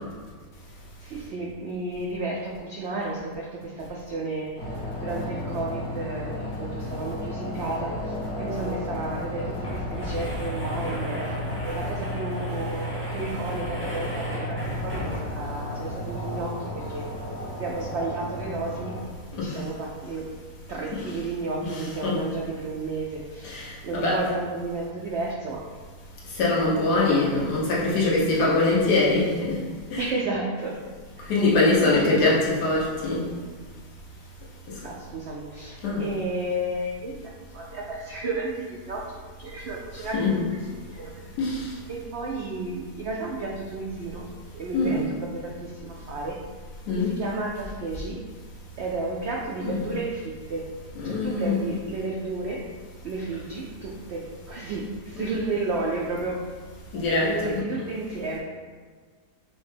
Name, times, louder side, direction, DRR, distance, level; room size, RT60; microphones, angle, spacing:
voice 1, 1.0-4.5 5.0-11.2 11.6-17.1 17.6-18.9 19.4-20.3 20.7-25.6 28.2-29.1 30.0-30.8 31.2-31.4 31.8-32.4 34.8-41.2 41.9-44.3 44.5-46.4 46.9-48.2 48.8-50.7 51.0-52.6 53.0-56.4 57.2-58.4, right 2 dB, 85° right, -2 dB, 0.5 m, -32 dB
sound 1, 4.6-19.1, left 1 dB, 55° left, 1.2 m, -33 dB
sound 2, 7.9-8.0 8.3-8.4 9.1-15.6, equal, 10° right, 0.6 m, -36 dB
voice 2, 21.7-22.2 23.4-24.2 26.3-29.6 29.9-30.0 31.3-33.2 35.8-36.0 40.1-40.3 41.4-41.7 44.7-45.0 46.9-47.1 49.6-49.8 51.0-51.6 56.9-57.5, left 3 dB, 85° left, -5 dB, 1.5 m, -23 dB
5.7 x 2.1 x 3.2 m, 1.5 s
omnidirectional pair, 1.7 m